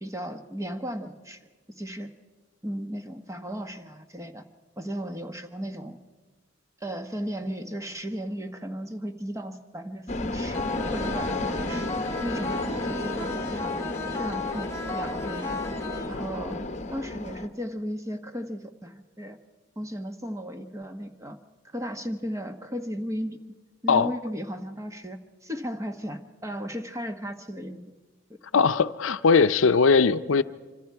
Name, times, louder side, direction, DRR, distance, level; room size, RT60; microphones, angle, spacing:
voice 1, 0.0-1.4 1.8-2.1 2.6-4.4 4.8-6.0 6.8-10.6 10.9-11.9 12.2-13.8 14.2-15.6 16.0-16.6 16.9-19.4 19.8-21.4 21.7-23.4 23.8-27.9, equal, 15° right, 6 dB, 1.1 m, -35 dB
sound 1, 10.1-17.5, left 2 dB, 35° left, 1.0 m, -32 dB
sound 2, 10.5-16.5, left 3 dB, 15° left, 1.7 m, -35 dB
voice 2, 28.5-30.4, left 5 dB, 80° left, 13 dB, 0.6 m, -20 dB
25.5 x 25.5 x 4.7 m, 1.3 s
head